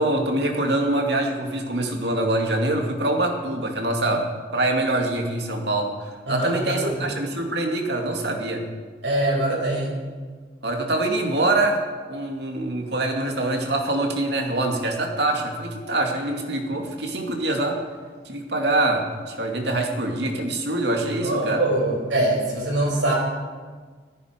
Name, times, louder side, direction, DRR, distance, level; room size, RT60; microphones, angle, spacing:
voice 1, 0.0-4.3 4.5-5.9 6.3-8.6 10.6-11.8 12.1-17.8 18.3-21.6, right 2 dB, 65° right, 2 dB, 2.4 m, -24 dB
voice 2, 6.3-7.2 9.0-10.0 21.2-23.1, right 1 dB, 85° right, -2 dB, 5.4 m, -23 dB
17.0 x 14.5 x 5.2 m, 1.5 s
head